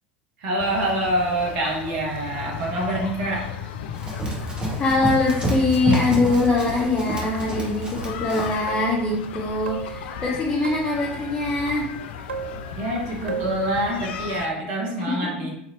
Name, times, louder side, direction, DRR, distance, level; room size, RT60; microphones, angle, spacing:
voice 1, 0.4-3.5 12.8-15.5, right 1 dB, 55° right, -2 dB, 1.0 m, -26 dB
sound 1, 0.6-14.5, left 8 dB, 60° left, 0.4 m, -36 dB
Run, 3.9-8.6, right 1 dB, 15° right, 0.9 m, -28 dB
voice 2, 4.8-11.9 15.1-15.2, left 3 dB, 20° left, -5 dB, 0.8 m, -23 dB
sound 2, 6.5-6.9 7.3-7.9 8.7-9.1 9.7-11.1 12.3-13.0 13.3-13.7, right 6 dB, 80° right, 0.4 m, -36 dB
4.1 x 2.8 x 2.8 m, 0.75 s
figure-of-eight pair, 80°, 6 cm